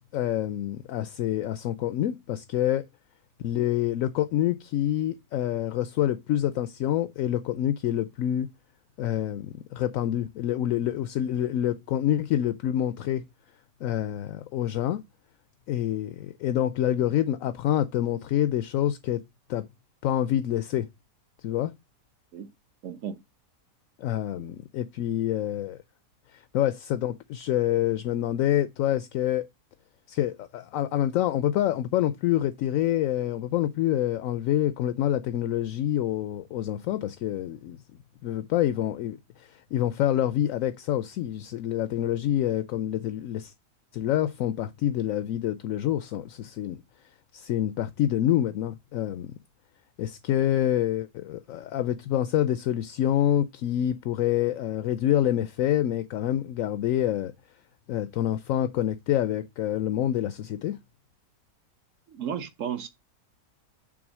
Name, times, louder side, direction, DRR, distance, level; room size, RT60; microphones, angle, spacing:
voice 1, 0.1-2.9 3.4-8.5 9.0-13.2 13.8-15.0 15.7-19.2 19.5-19.7 20.0-20.9 21.4-21.7 24.0-25.8 26.3-29.5 30.1-37.8 38.2-43.5 43.9-46.8 47.3-49.3 50.0-57.3 57.9-60.8, left 12 dB, 70° left, 0.9 m, -27 dB
voice 2, 22.8-23.2 24.4-24.5 62.1-62.9, right 8 dB, 60° right, 1.3 m, -34 dB
6.2 x 3.8 x 6.0 m
omnidirectional pair, 1.6 m